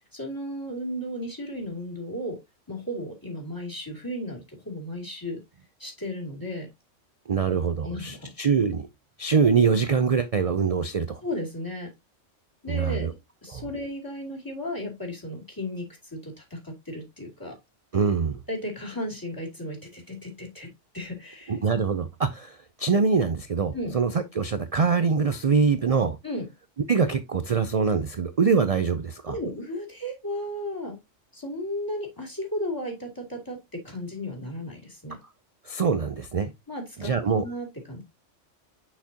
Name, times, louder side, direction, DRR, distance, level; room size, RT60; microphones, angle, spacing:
voice 1, 0.1-2.4 2.7-5.4 5.8-6.7 7.8-8.2 11.2-11.9 12.6-13.1 13.4-17.6 18.5-20.7 20.9-21.6 23.7-23.9 26.2-26.5 29.3-31.0 31.3-35.2 36.7-38.0, left 1 dB, 15° left, 2.6 m, -34 dB
voice 2, 7.3-8.9 9.2-11.2 12.7-13.1 13.5-13.6 17.9-18.4 21.5-26.2 26.9-29.4 35.7-36.5 37.0-37.4, right 5 dB, 50° right, 0.4 m, -24 dB
6.4 x 6.0 x 2.8 m
omnidirectional pair, 1.3 m